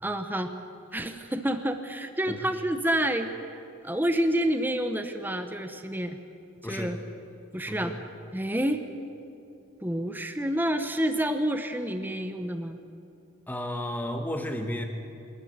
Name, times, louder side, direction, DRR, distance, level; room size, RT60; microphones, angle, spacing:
voice 1, 0.0-0.5 0.9-6.2 6.7-7.0 7.5-7.9 8.3-8.8 9.8-12.8, right 1 dB, 10° right, 7 dB, 0.8 m, -28 dB
voice 2, 7.7-8.0 13.5-14.9, left 1 dB, 10° left, 4 dB, 1.2 m, -32 dB
25.0 x 14.0 x 9.5 m, 2.7 s
head